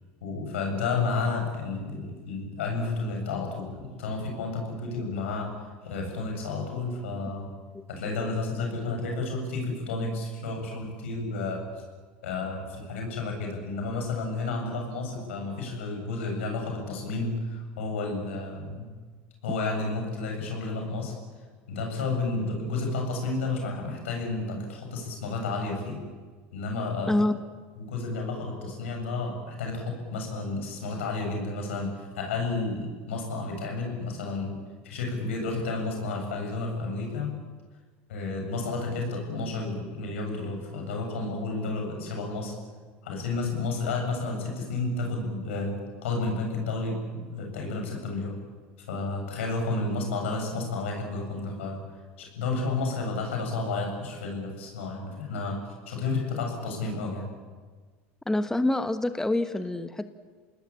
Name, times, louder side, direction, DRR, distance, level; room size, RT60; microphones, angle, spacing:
voice 1, 0.2-5.5 5.8-7.5 7.9-11.7 12.2-18.9 19.4-21.2 21.7-26.0 26.5-27.2 27.8-34.6 34.8-37.3 38.1-42.6 43.0-48.4 48.9-51.8 52.2-57.3, left 3 dB, 90° left, 2 dB, 7.7 m, -31 dB
voice 2, 27.1-27.4 58.3-60.1, left 1 dB, 10° left, 10 dB, 1.2 m, -26 dB
27.5 x 19.5 x 8.8 m, 1.5 s
supercardioid pair, 105°, 6 cm